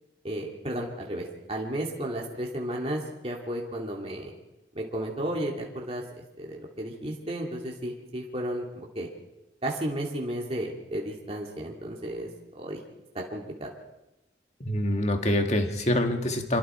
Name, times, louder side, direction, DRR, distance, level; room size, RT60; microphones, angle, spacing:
voice 1, 0.2-4.3 4.7-6.0 6.4-9.1 9.6-12.3 12.5-12.8 13.1-13.7, right 1 dB, 35° right, -1 dB, 2.6 m, -33 dB
voice 2, 14.6-16.6, left 1 dB, 40° left, 5 dB, 1.9 m, -25 dB
26.5 x 22.5 x 4.5 m, 0.98 s
head